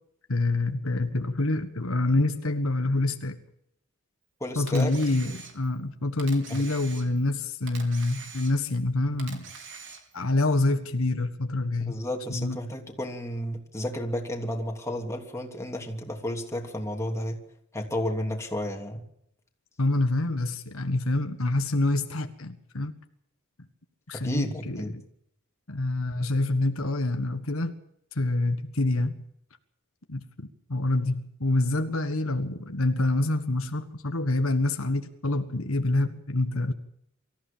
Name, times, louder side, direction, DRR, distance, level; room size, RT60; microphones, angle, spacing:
voice 1, 0.3-3.4 4.5-9.5 10.1-12.0 12.3-12.6 19.8-23.0 24.1-25.0 25.7-27.8 28.1-29.2 30.1-36.7, left 2 dB, 75° left, 7 dB, 1.6 m, -26 dB
voice 2, 4.4-4.9 6.5-6.6 11.8-17.4 17.7-19.0 24.1-25.0, left 1 dB, 15° left, 2 dB, 3.1 m, -32 dB
Camera, 4.7-5.8 6.2-7.3 7.7-8.8 9.2-10.2, right 5 dB, 60° right, 4.2 m, -44 dB
24.5 x 14.5 x 7.4 m, 0.74 s
head